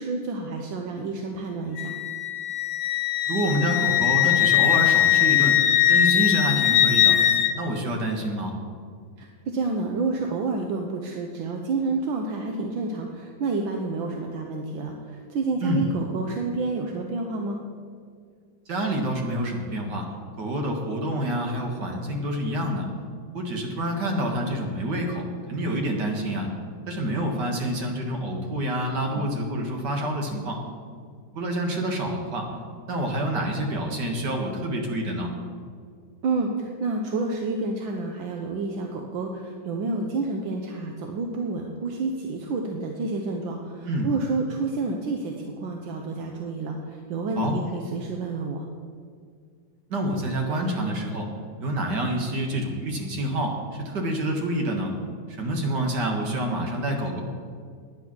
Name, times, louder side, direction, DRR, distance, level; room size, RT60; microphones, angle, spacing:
voice 1, 0.0-1.9 9.2-17.6 36.2-48.6, right 3 dB, 75° right, 2 dB, 1.6 m, -29 dB
Wind instrument woodwind instrument, 1.8-7.5, left 11 dB, 75° left, 1.3 m, -20 dB
voice 2, 3.3-5.6 5.9-7.2 7.6-8.5 15.6-15.9 18.7-20.1 20.4-22.9 23.3-26.5 26.9-30.6 31.3-32.5 32.9-35.3 43.9-44.1 47.4-47.6 49.9-51.3 51.6-54.9 55.4-57.2, right 1 dB, 60° right, 2 dB, 2.1 m, -27 dB
10.5 x 9.7 x 6.1 m, 2.1 s
omnidirectional pair, 2.1 m